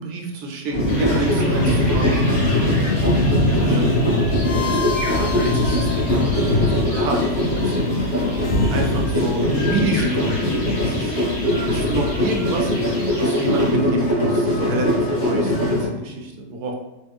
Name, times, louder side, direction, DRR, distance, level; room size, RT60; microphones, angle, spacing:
voice 1, 0.0-2.4 3.2-4.2 4.5-8.0 8.7-11.2 11.6-16.7, right 2 dB, 70° right, 1 dB, 1.0 m, -28 dB
sound 1, 0.7-15.9, left 1 dB, 30° left, 1.0 m, -20 dB
sound 2, 0.9-13.7, left 1 dB, 50° left, 1.4 m, -35 dB
sound 3, 4.0-7.1 8.4-9.1, left 6 dB, 70° left, 0.9 m, -32 dB
3.2 x 2.2 x 3.4 m, 1.0 s
omnidirectional pair, 1.8 m